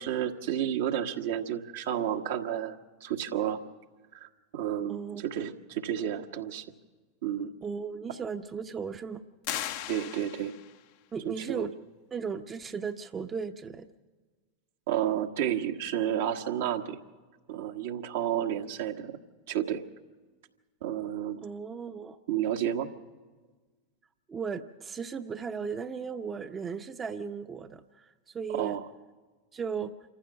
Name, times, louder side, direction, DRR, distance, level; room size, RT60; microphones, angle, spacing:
voice 1, 0.0-3.6 4.2-6.7 7.2-7.5 9.9-10.5 11.2-11.7 14.9-17.0 17.5-19.2 19.5-19.8 20.8-21.4 22.3-22.9 28.5-28.9, right 10 dB, 65° right, 4 dB, 1.3 m, -31 dB
voice 2, 4.9-5.2 7.6-9.2 11.1-11.7 12.1-13.9 21.4-22.2 24.3-28.1 28.3-28.8 29.5-29.9, right 6 dB, 25° right, 7 dB, 0.8 m, -36 dB
sound 1, 9.4-10.8, left 12 dB, 60° left, 0.9 m, -37 dB
27.0 x 14.5 x 6.9 m, 1.4 s
hypercardioid pair, 90°, 0 cm